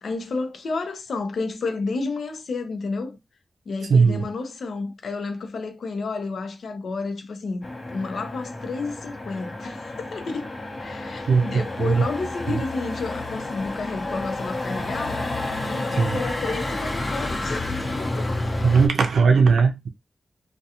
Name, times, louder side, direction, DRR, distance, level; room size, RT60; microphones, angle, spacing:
voice 1, 0.0-3.2 3.7-15.2 15.6-18.3, left 3 dB, 80° left, 0.6 m, -31 dB
voice 2, 3.9-4.2 11.3-12.0 12.5-12.6 16.0-16.2 18.6-19.9, right 5 dB, 90° right, 0.4 m, -19 dB
Motor vehicle (road), 7.6-18.9, left 2 dB, 40° left, 0.9 m, -30 dB
2.4 x 2.2 x 2.8 m
wide cardioid pair, 85°, 0 cm